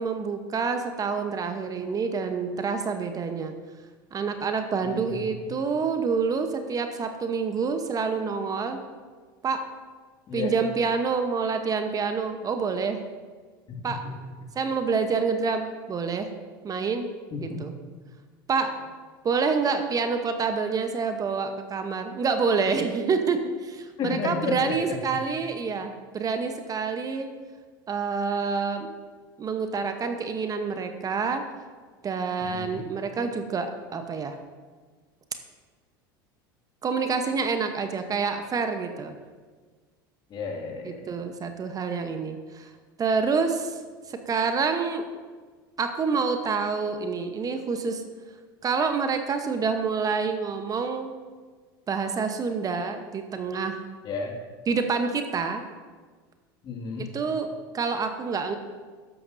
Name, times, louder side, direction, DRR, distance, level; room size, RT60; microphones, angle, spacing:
voice 1, 0.0-3.6 4.1-8.8 9.4-9.6 10.3-13.0 13.8-14.0 14.5-16.3 16.6-17.1 17.4-17.7 18.5-18.7 19.2-27.3 27.9-28.9 29.4-31.4 32.0-34.4 36.8-39.2 40.8-42.7 43.0-43.8 44.1-45.0 45.8-48.0 48.6-51.1 51.9-53.8 54.7-55.6 57.1-58.6, right 5 dB, 30° right, 7 dB, 1.0 m, -27 dB
voice 2, 4.8-5.6 10.3-10.5 13.7-14.2 14.9-15.0 17.3-17.6 24.0-25.2 32.4-32.8 40.3-41.1 54.0-54.4 56.6-57.1, left 5 dB, 40° left, 0 dB, 2.3 m, -33 dB
13.0 x 10.5 x 2.7 m, 1.5 s
hypercardioid pair, 80°, 12 cm